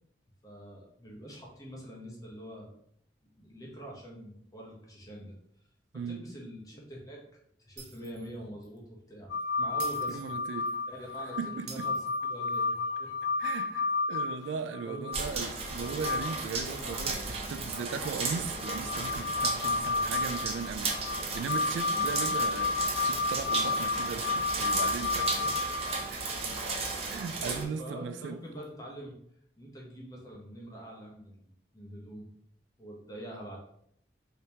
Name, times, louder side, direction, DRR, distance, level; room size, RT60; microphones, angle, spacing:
voice 1, 0.4-2.8 3.4-5.4 6.1-7.2 7.6-9.3 9.6-10.3 10.9-12.0 12.3-13.1 14.4-14.5 14.8-15.1 17.2-17.6 21.9-22.1 25.4-25.5 25.8-25.9 27.4-29.2 29.6-32.3 32.8-33.6, right 1 dB, 20° left, 0.8 m, -45 dB
Shatter, 7.8-8.3 8.6-8.8 9.8-10.8 11.7-12.7, right 4 dB, 70° right, 0.8 m, -47 dB
sound 1, 9.3-15.2 15.7-16.5 16.8-16.9 18.0-26.4 28.6-28.7, left 3 dB, 85° left, 0.6 m, -32 dB
voice 2, 10.1-10.7 11.4-11.9 13.4-25.3 26.1-26.3 27.1-28.4, right 5 dB, 85° right, 0.3 m, -38 dB
sound 2, 15.1-27.6, right 3 dB, 35° right, 0.5 m, -35 dB
3.4 x 2.9 x 2.8 m
head